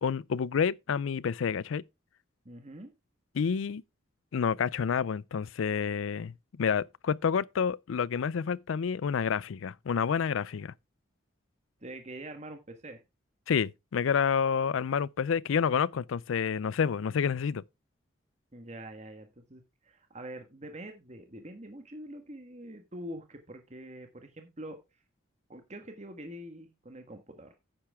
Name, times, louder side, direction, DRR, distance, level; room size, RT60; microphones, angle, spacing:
voice 1, 0.0-1.8 3.3-3.8 4.3-10.7 13.5-17.6, left 6 dB, 80° left, 0.4 m, -29 dB
voice 2, 2.4-2.9 11.8-13.0 18.5-24.8 25.5-27.6, right 1 dB, 35° right, 1.5 m, -45 dB
9.7 x 8.9 x 3.5 m
head